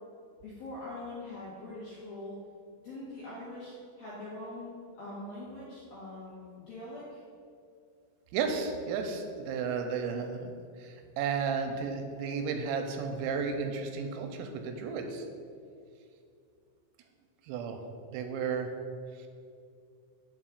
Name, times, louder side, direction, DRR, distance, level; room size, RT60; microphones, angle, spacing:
voice 1, 0.4-2.4 2.8-7.2, left 2 dB, 75° left, -9 dB, 2.2 m, -43 dB
voice 2, 8.3-10.5 10.8-15.3 17.5-17.8 18.1-18.7, right 5 dB, 85° right, 4 dB, 3.2 m, -33 dB
8.6 x 7.2 x 2.4 m, 2.3 s
omnidirectional pair, 5.9 m